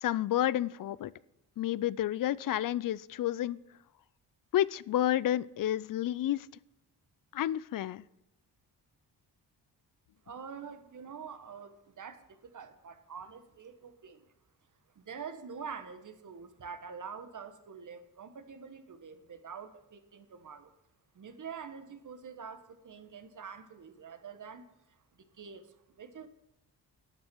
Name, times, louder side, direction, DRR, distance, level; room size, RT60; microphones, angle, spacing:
voice 1, 0.0-1.1 1.6-3.6 4.5-6.5 7.3-8.0, left 12 dB, 55° left, 21 dB, 0.4 m, -30 dB
voice 2, 10.3-14.3 14.9-20.7 21.1-25.0 25.3-26.3, right 6 dB, 50° right, 10 dB, 1.3 m, -46 dB
12.0 x 8.7 x 4.6 m, 0.88 s
cardioid pair, 65°, 40 cm